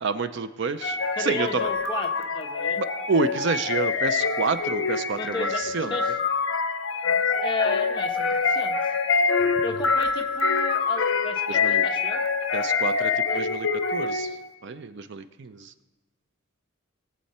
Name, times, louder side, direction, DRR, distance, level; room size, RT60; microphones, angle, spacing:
voice 1, 0.0-1.7 2.8-5.9 11.5-11.8 12.5-15.7, right 4 dB, 55° right, 11 dB, 0.5 m, -29 dB
sound 1, 0.8-14.5, left 5 dB, 60° left, 0.7 m, -25 dB
voice 2, 1.2-2.8 5.1-6.1 7.0-8.8 9.6-12.2, left 3 dB, 20° left, 2 dB, 1.0 m, -33 dB
20.5 x 7.6 x 4.2 m, 1.2 s
head